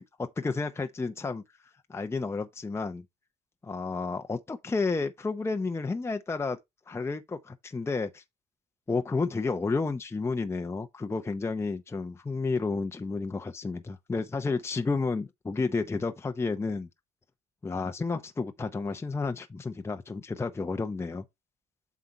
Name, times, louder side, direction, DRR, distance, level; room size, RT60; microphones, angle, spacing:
voice 1, 0.0-1.4 1.9-3.0 3.6-6.6 6.9-8.2 8.9-16.9 17.6-21.2, left 4 dB, 15° left, 0.7 m, -31 dB
7.9 x 4.6 x 4.2 m
cardioid pair, 110°, 17 cm